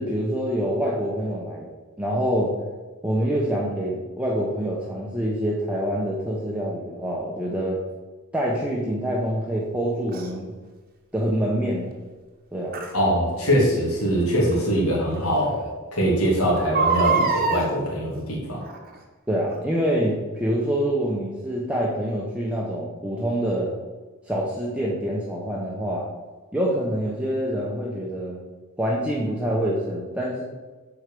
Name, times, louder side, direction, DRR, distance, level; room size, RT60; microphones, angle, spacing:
voice 1, 0.0-1.7 2.0-2.6 3.0-7.8 8.3-10.5 11.1-11.9 12.5-12.8 19.3-23.7 24.3-26.1 26.5-28.4 28.8-30.4, equal, 5° right, -4 dB, 1.0 m, -26 dB
Crying sobbing, 10.1-10.3 12.7-12.9 14.5-14.6 15.1-15.2 15.5-15.6 16.6-17.7 18.6-19.0 19.5-19.6, right 5 dB, 40° right, 1.2 m, -23 dB
voice 2, 12.9-15.6 15.9-18.6, equal, 80° left, -4 dB, 2.6 m, -22 dB
8.1 x 4.8 x 6.7 m, 1.3 s
head